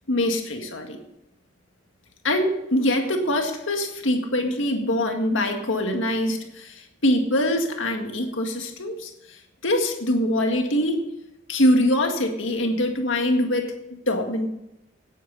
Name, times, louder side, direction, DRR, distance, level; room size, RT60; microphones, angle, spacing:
voice 1, 0.1-1.0 2.2-9.4 9.6-11.0 11.5-13.7 14.1-14.5, left 1 dB, 75° left, 4 dB, 1.9 m, -23 dB
17.5 x 9.3 x 4.1 m, 0.87 s
head